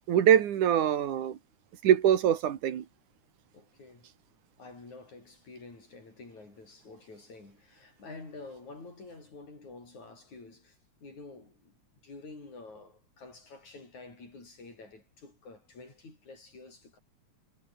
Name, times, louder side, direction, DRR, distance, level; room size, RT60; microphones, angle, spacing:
voice 1, 0.1-1.4 1.8-2.8, right 10 dB, 85° right, 3.3 m, -23 dB
voice 2, 3.5-4.1 4.6-11.8 12.0-17.0, left 3 dB, 70° left, 9.4 m, -49 dB
omnidirectional pair, 3.4 m